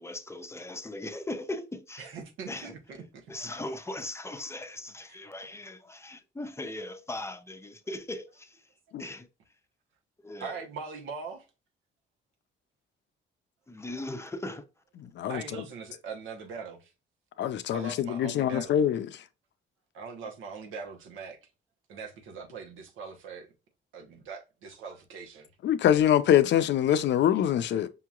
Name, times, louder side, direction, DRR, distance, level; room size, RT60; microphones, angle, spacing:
voice 1, 0.0-2.2 2.5-2.7 3.3-8.6 9.0-9.3 10.2-10.6 13.7-14.6, left 2 dB, 15° left, 0.5 m, -39 dB
voice 2, 2.0-3.3 5.1-5.2 10.4-11.4 15.3-16.9 17.7-18.7 19.9-21.4 21.9-23.5 23.9-25.5, right 5 dB, 85° right, 1.0 m, -41 dB
voice 3, 17.4-19.1 25.6-27.9, left 10 dB, 65° left, 0.5 m, -24 dB
5.5 x 2.9 x 2.3 m
cardioid pair, 90°, 20 cm